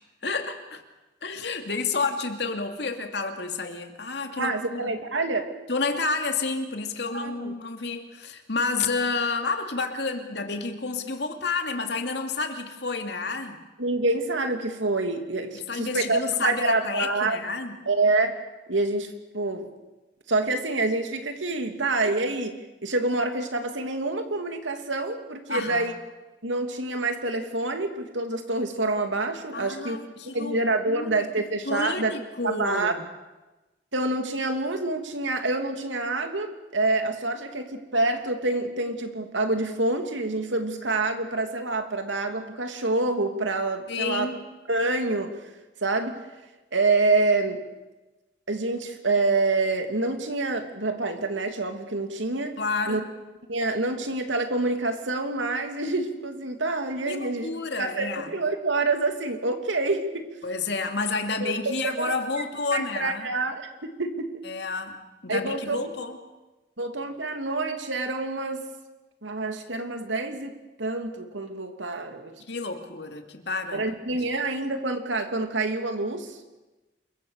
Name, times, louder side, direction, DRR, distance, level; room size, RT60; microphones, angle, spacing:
voice 1, 0.2-0.8 1.2-4.9 5.7-13.6 15.7-17.8 25.5-25.9 29.5-30.5 30.9-31.2 31.7-33.0 43.9-44.5 52.6-53.0 57.1-58.3 60.4-63.3 64.4-65.0 65.2-66.2 72.5-73.8, left 4 dB, 65° left, 5 dB, 2.7 m, -30 dB
voice 2, 4.4-5.5 7.1-7.5 13.8-17.4 17.9-18.4 18.7-19.7 20.3-26.0 26.4-30.0 30.3-32.1 32.4-32.9 33.9-44.3 44.7-45.3 45.8-46.2 46.7-47.6 48.5-52.5 52.9-53.0 53.5-60.3 61.4-62.1 62.7-64.4 65.3-65.9 66.8-68.6 69.2-72.4 73.7-76.6, right 2 dB, 85° right, 6 dB, 2.9 m, -27 dB
28.0 x 23.0 x 6.8 m, 1.1 s
head